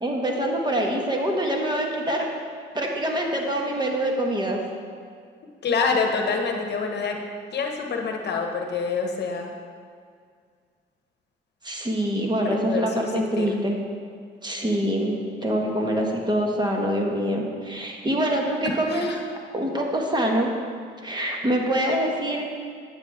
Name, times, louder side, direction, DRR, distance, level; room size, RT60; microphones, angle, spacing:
voice 1, 0.0-2.3 2.7-4.6 11.6-13.8 14.4-19.1 19.5-20.5 21.0-22.4, right 1 dB, 20° right, 0 dB, 1.3 m, -25 dB
voice 2, 5.6-7.2 7.5-9.5 12.4-12.9 13.1-13.5 18.6-19.2, left 4 dB, 60° left, 3 dB, 1.0 m, -26 dB
9.1 x 7.7 x 3.5 m, 2.1 s
cardioid pair, 90°, 20 cm